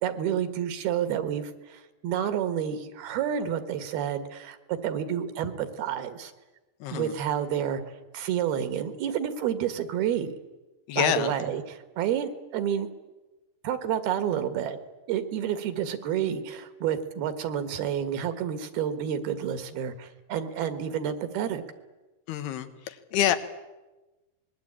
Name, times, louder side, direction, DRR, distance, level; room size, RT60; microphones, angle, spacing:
voice 1, 0.0-6.3 6.9-7.8 8.1-10.3 11.0-12.9 13.6-14.8 15.1-21.6, right 9 dB, 75° right, 10 dB, 3.4 m, -29 dB
voice 2, 6.8-7.1 10.9-11.3 22.3-23.4, left 10 dB, 80° left, 10 dB, 3.3 m, -27 dB
25.5 x 21.5 x 8.9 m, 1.1 s
omnidirectional pair, 4.6 m